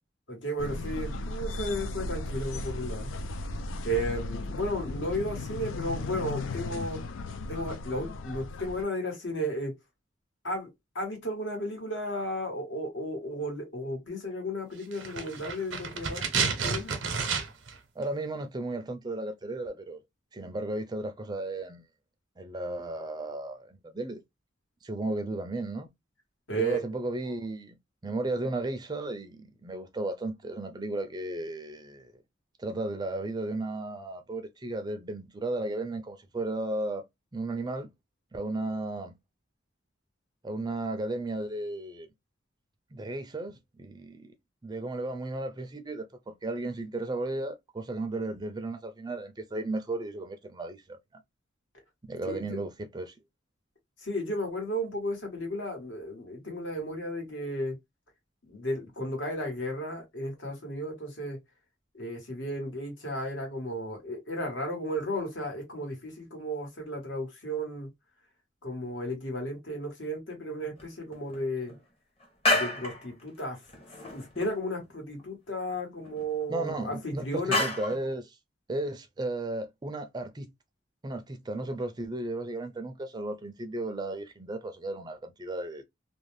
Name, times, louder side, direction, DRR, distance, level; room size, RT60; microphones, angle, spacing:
voice 1, 0.3-3.1 3.8-7.0 7.5-9.8 10.4-10.7 10.9-16.9 26.5-26.8 52.2-52.6 54.0-57.8 58.4-61.4 61.9-67.9 68.6-71.7 72.5-73.6 73.9-77.6, equal, 70° left, 1.3 m, -34 dB
sound 1, 0.6-8.8, left 2 dB, 90° left, 0.4 m, -36 dB
sound 2, 14.9-17.8 18.0-18.1, right 5 dB, 85° right, 0.7 m, -30 dB
voice 2, 18.0-20.0 20.3-21.8 22.4-24.2 24.8-25.9 26.6-27.8 28.0-32.2 32.6-37.0 37.3-37.9 38.3-39.1 40.4-42.1 42.9-44.3 44.6-51.0 52.1-53.1 76.5-78.4 78.7-80.5 81.0-85.8, right 2 dB, 20° right, 0.4 m, -34 dB
sound 3, 70.8-70.9 71.1-71.8 72.2-73.1 73.4-73.5 73.7-74.6 74.8-74.9 75.2-75.3 76.0-77.0 77.5-78.0, left 1 dB, 30° left, 0.9 m, -30 dB
2.6 x 2.1 x 3.1 m
head